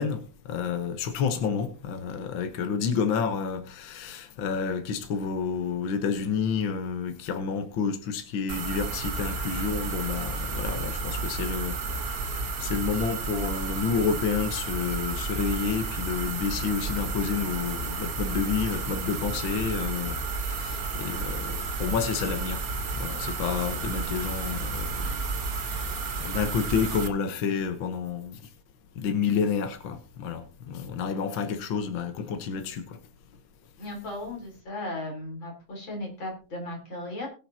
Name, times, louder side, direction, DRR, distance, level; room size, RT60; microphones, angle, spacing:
voice 1, 0.0-22.6 22.9-26.0 26.2-28.5 28.9-33.0, left 6 dB, 60° left, 1.3 m, -30 dB
sound 1, 8.5-27.1, right 4 dB, 65° right, 0.8 m, -32 dB
voice 2, 33.8-37.3, left 1 dB, 40° left, 4.3 m, -36 dB
21.0 x 7.7 x 2.8 m
omnidirectional pair, 3.5 m